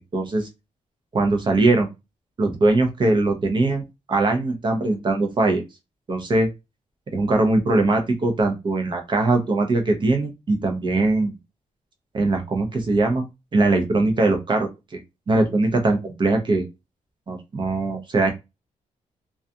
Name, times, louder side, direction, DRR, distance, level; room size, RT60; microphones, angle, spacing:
voice 1, 0.1-0.5 1.1-1.9 2.4-5.6 6.1-6.5 7.1-11.3 12.1-13.2 13.5-14.7 15.3-16.7 17.3-18.3, right 2 dB, 35° right, 4 dB, 0.6 m, -21 dB
2.3 x 2.3 x 2.7 m, 0.24 s
cardioid pair, 120°, 13 cm